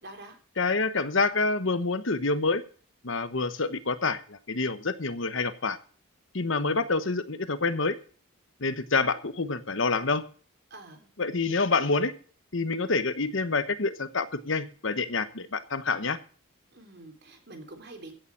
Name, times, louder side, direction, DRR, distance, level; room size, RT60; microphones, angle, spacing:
voice 1, 0.0-0.4 10.7-11.1 16.7-18.2, right 2 dB, 50° right, 4 dB, 3.5 m, -46 dB
voice 2, 0.6-2.6 3.0-5.8 6.3-8.0 8.6-10.2 11.2-12.1 12.5-16.2, left 3 dB, 60° left, 12 dB, 1.1 m, -27 dB
16.0 x 7.1 x 6.1 m, 0.42 s
head